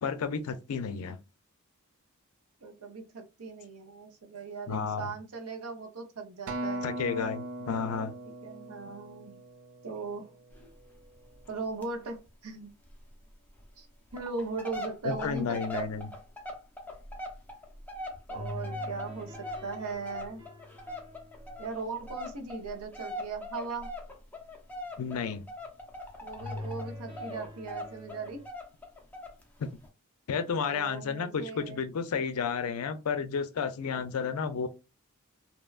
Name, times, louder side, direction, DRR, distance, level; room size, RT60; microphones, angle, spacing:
voice 1, 0.0-1.2 4.7-5.1 6.8-8.1 15.0-16.1 25.0-25.4 29.6-29.7 30.3-34.7, left 6 dB, 75° left, 0.4 m, -32 dB
voice 2, 2.6-6.8 8.2-9.4 9.8-10.3 11.5-12.7 13.8-13.9 14.1-15.9 18.3-20.4 21.6-23.9 26.2-28.4 30.7-31.8, right 4 dB, 80° right, 0.7 m, -38 dB
Acoustic guitar, 6.5-10.9 11.5-11.7, right 1 dB, 55° right, 0.4 m, -39 dB
sound 1, 10.5-10.7 10.9-11.0 11.3-11.5 11.8-11.9 12.3-12.4 12.9-13.0 13.6-13.7 14.1-26.9 27.2-29.4 29.8-29.9, left 1 dB, 10° left, 0.5 m, -41 dB
sound 2, 18.3-23.6 26.4-28.5, left 2 dB, 20° right, 0.8 m, -44 dB
2.9 x 2.2 x 2.3 m
head